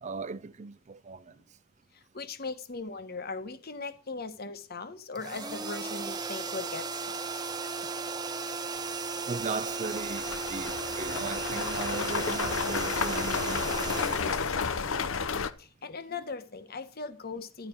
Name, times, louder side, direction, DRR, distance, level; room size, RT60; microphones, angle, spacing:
voice 1, 0.0-1.2 9.3-15.0, right 4 dB, 35° right, 0.5 m, -38 dB
voice 2, 1.9-7.2 15.6-17.7, left 4 dB, 50° left, 1.2 m, -39 dB
sound 1, 5.2-15.1, right 4 dB, 20° right, 0.9 m, -35 dB
sound 2, 8.8-8.9 9.4-15.5, left 5 dB, 85° left, 0.8 m, -32 dB
12.0 x 11.0 x 4.5 m
head